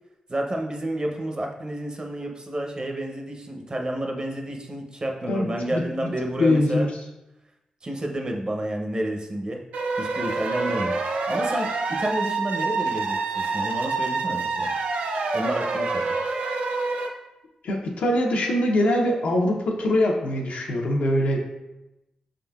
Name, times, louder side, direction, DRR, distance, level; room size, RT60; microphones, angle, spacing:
voice 1, 0.3-6.9 7.8-9.6 10.0-11.7 12.0-14.7 15.3-16.0, right 1 dB, 35° right, 2 dB, 0.6 m, -30 dB
voice 2, 5.3-5.8 6.4-6.9 17.6-21.4, left 1 dB, 85° left, 0 dB, 0.7 m, -23 dB
sound 1, 9.7-17.1, right 3 dB, 90° right, 0.4 m, -27 dB
4.9 x 3.7 x 2.3 m, 0.95 s
cardioid pair, 60°, 2 cm